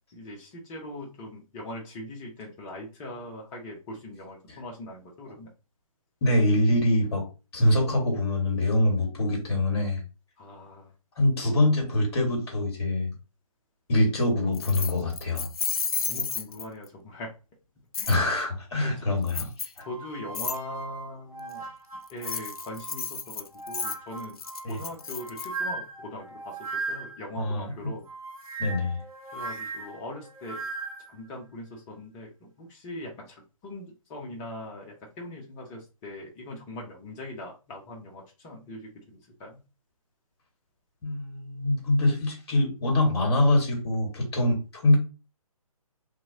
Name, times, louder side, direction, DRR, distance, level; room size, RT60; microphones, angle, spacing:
voice 1, 0.1-5.5 10.4-10.9 16.1-17.3 18.0-18.1 18.8-19.1 19.8-21.7 22.1-24.4 24.7-28.1 29.3-30.7 31.1-39.6, left 1 dB, 15° left, -1 dB, 0.8 m, -41 dB
voice 2, 6.2-7.3 7.5-10.0 11.2-13.1 13.9-15.5 18.1-19.9 24.6-24.8 27.3-27.9 28.6-29.0 41.0-45.0, left 1 dB, 45° left, 1 dB, 1.5 m, -24 dB
Keys jangling, 14.5-16.9 17.9-18.2 19.3-19.8 20.3-20.6 22.1-25.5, left 5 dB, 80° left, 0.4 m, -32 dB
sound 1, 19.8-23.1 23.5-27.3 28.0-31.1, right 3 dB, 70° right, 1.7 m, -38 dB
3.1 x 2.8 x 2.7 m, 0.31 s
figure-of-eight pair, 140°, 19 cm